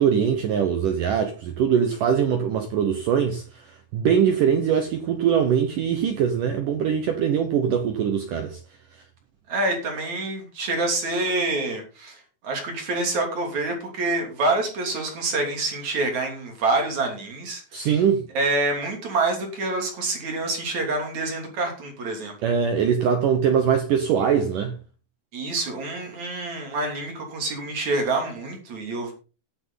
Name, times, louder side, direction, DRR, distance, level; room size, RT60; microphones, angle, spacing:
voice 1, 0.0-3.4 3.9-8.6 17.7-18.2 22.4-24.8, right 8 dB, 85° right, 1.8 m, -22 dB
voice 2, 9.5-18.0 18.3-22.3 25.3-29.1, right 2 dB, 40° right, 3.8 m, -27 dB
16.0 x 8.2 x 3.9 m
omnidirectional pair, 5.5 m